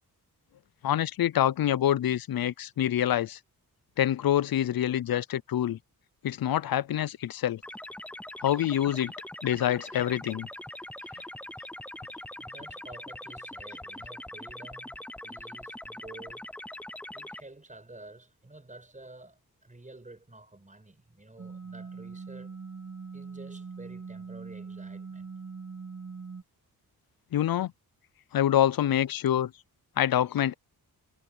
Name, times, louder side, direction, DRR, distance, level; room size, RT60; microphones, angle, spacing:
voice 1, 0.8-3.4 4.0-5.8 6.2-7.6 8.4-9.1 9.4-10.5 27.3-27.7 28.3-29.5 30.0-30.5, left 11 dB, 65° left, 0.6 m, -26 dB
sound 1, 7.6-17.4, left 1 dB, 5° left, 0.5 m, -42 dB
voice 2, 12.4-16.5 17.1-22.6 23.1-25.3, right 2 dB, 20° right, 6.1 m, -50 dB
sound 2, 21.4-26.4, right 5 dB, 45° right, 1.7 m, -42 dB
wide cardioid pair, 90°, 38 cm